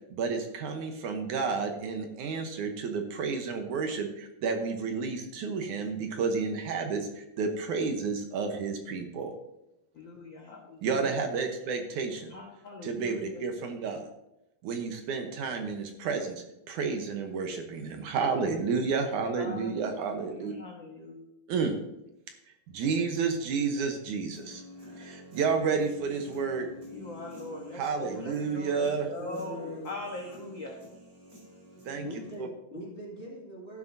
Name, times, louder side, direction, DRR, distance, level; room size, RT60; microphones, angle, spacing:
voice 1, 0.1-9.3 10.8-12.3 12.8-14.0 14.6-20.5 21.5-21.8 22.7-24.6 25.0-26.7 27.7-29.1 31.9-32.1, right 5 dB, 70° right, 5 dB, 2.3 m, -31 dB
voice 2, 9.9-11.1 12.3-13.4 19.3-21.2 26.9-30.8, left 2 dB, 55° left, 0 dB, 1.3 m, -42 dB
Human voice / Guitar, 24.3-32.3, left 1 dB, 40° right, 5.0 m, -48 dB
voice 3, 29.2-29.9 31.7-33.8, left 1 dB, 25° left, -4 dB, 2.1 m, -41 dB
13.0 x 11.0 x 2.7 m, 0.87 s
omnidirectional pair, 3.9 m